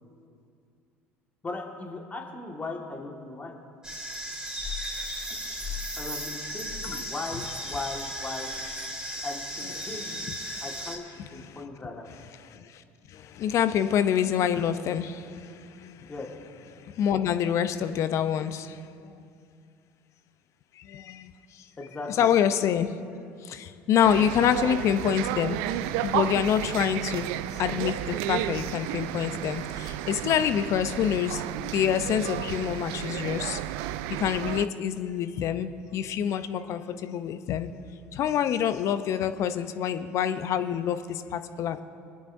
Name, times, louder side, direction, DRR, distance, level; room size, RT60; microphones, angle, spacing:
voice 1, 1.4-3.6 6.0-8.5 9.2-10.0 10.6-11.1 11.3-12.1 16.1-16.3 21.8-22.3, left 3 dB, 25° left, 1 dB, 1.7 m, -37 dB
sound 1, 3.8-11.0, equal, 10° right, 2.6 m, -35 dB
voice 2, 10.1-10.6 11.4-11.5 12.5-12.7 13.1-15.5 15.8-16.1 16.8-18.8 19.0-19.1 20.8-21.3 22.2-22.9 23.4-25.6 26.0-27.3 27.6-31.4 31.7-33.6 34.1-37.7 38.1-41.8, left 9 dB, 55° left, 11 dB, 0.6 m, -26 dB
sound 2, 24.0-34.7, right 13 dB, 70° right, 0.3 m, -32 dB
25.5 x 9.6 x 2.7 m, 2.4 s
hypercardioid pair, 70°, 6 cm